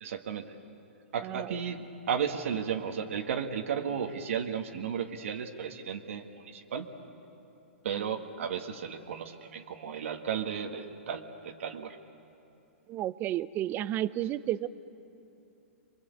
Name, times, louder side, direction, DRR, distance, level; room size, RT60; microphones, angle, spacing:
voice 1, 0.0-0.5 1.1-1.8 2.1-6.9 7.8-12.0, right 7 dB, 70° right, 3 dB, 1.7 m, -34 dB
voice 2, 1.2-1.6 12.9-14.7, right 13 dB, 30° right, 16 dB, 0.6 m, -32 dB
28.0 x 23.0 x 8.3 m, 2.8 s
hypercardioid pair, 130°, 7 cm